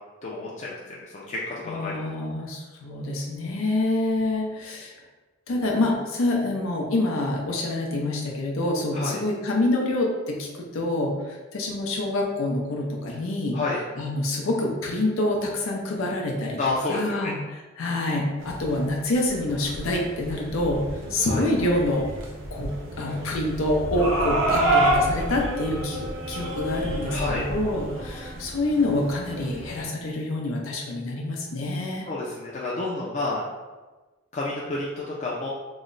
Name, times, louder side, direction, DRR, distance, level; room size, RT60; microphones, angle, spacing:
voice 1, 0.2-0.8 1.1-2.0 8.9-9.2 13.5-13.8 16.6-17.3 21.2-21.5 24.5-25.0 27.1-27.5 32.1-33.4 34.3-35.5, left 2 dB, 35° left, -5 dB, 0.4 m, -29 dB
voice 2, 1.7-4.9 5.5-13.6 14.0-16.6 16.9-17.4 17.8-20.8 21.1-22.0 22.5-32.1, left 1 dB, 90° left, -1 dB, 0.6 m, -26 dB
sound 1, 18.4-29.8, right 1 dB, 75° right, 0.7 m, -29 dB
3.1 x 2.0 x 3.8 m, 1.2 s
head